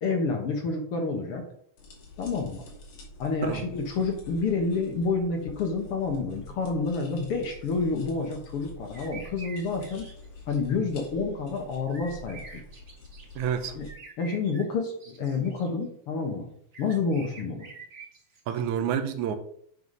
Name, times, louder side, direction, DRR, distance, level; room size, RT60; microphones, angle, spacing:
voice 1, 0.0-1.4 2.2-2.6 3.2-10.1 10.5-12.4 13.7-13.9 14.2-16.5 16.8-17.7, left 4 dB, 55° left, 3 dB, 1.9 m, -29 dB
sound 1, 1.8-13.9, left 3 dB, 80° left, 3.8 m, -46 dB
sound 2, 8.9-10.6 11.9-13.4 13.9-15.7 16.7-18.6, right 3 dB, 30° right, 1.4 m, -47 dB
voice 2, 13.4-13.7 18.5-19.4, right 8 dB, 80° right, 8 dB, 2.2 m, -28 dB
8.0 x 5.8 x 5.4 m, 0.66 s
omnidirectional pair, 3.5 m